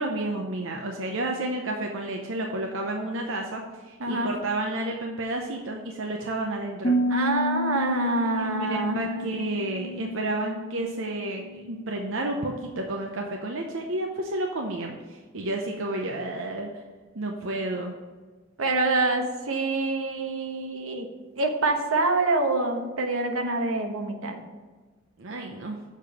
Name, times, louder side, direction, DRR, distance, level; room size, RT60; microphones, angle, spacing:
voice 1, 0.0-7.0 8.3-16.7 17.1-17.9 25.2-25.8, right 2 dB, 65° right, 1 dB, 0.8 m, -31 dB
voice 2, 4.0-4.3 7.1-9.0 18.6-21.1 21.4-24.4, right 2 dB, 85° right, 4 dB, 1.1 m, -26 dB
Piano, 6.8-12.4, equal, 35° left, 1.0 m, -30 dB
6.7 x 5.3 x 6.2 m, 1.4 s
head